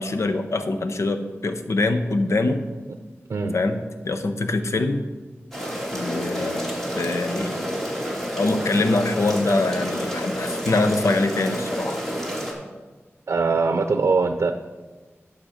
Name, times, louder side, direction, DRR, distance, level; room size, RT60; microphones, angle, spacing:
voice 1, 0.0-2.6 3.5-3.8 4.0-5.0 5.9-7.8 8.4-12.0, left 2 dB, 80° left, 8 dB, 0.8 m, -24 dB
sound 1, 5.5-12.5, equal, 5° left, 2.5 m, -29 dB
voice 2, 13.3-14.5, right 4 dB, 75° right, 7 dB, 0.6 m, -21 dB
12.0 x 6.8 x 5.0 m, 1.3 s
wide cardioid pair, 95°, 5 cm